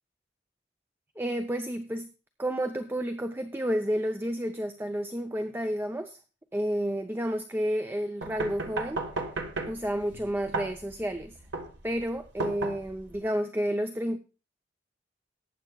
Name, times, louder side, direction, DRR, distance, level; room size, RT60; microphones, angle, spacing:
voice 1, 1.2-2.1 2.4-6.2 6.5-9.0 9.7-11.3 11.8-14.2, equal, 10° right, 7 dB, 0.5 m, -30 dB
sound 1, 8.2-13.2, right 3 dB, 75° right, 1.4 m, -35 dB
18.5 x 8.7 x 2.3 m, 0.33 s
head